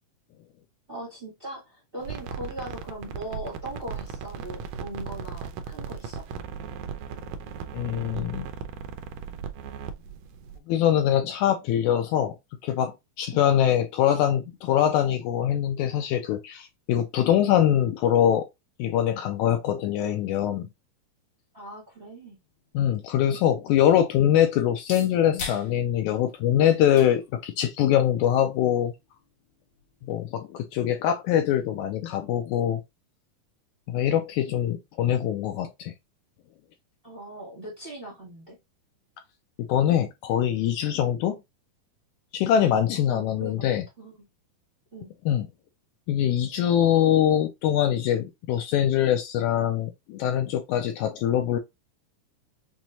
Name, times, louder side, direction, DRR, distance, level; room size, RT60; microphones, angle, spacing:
voice 1, 0.9-6.3 13.3-13.5 21.5-22.4 37.0-38.6 43.0-43.6 44.0-44.2 44.9-45.1, right 1 dB, 60° right, 0.5 m, -39 dB
sound 1, 2.0-10.6, right 6 dB, 85° right, 1.6 m, -37 dB
voice 2, 7.7-8.5 10.7-12.4 12.6-18.5 18.8-20.7 22.7-28.9 30.1-32.8 33.9-35.9 39.6-41.4 42.3-43.8 45.3-45.5 46.1-51.6, left 10 dB, 80° left, 1.7 m, -23 dB
sound 2, 22.4-30.4, left 5 dB, 65° left, 2.4 m, -45 dB
6.0 x 2.1 x 2.6 m
omnidirectional pair, 3.8 m